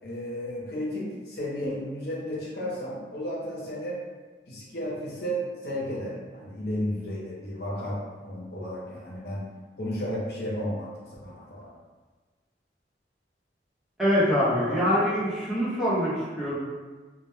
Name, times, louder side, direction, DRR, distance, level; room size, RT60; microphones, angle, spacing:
voice 1, 0.0-4.0 4.5-9.4 9.8-10.9 11.2-11.7 14.5-14.9, equal, 65° left, -5 dB, 0.7 m, -33 dB
voice 2, 14.0-16.6, equal, 5° right, -10 dB, 0.5 m, -24 dB
2.2 x 2.1 x 3.0 m, 1.4 s
head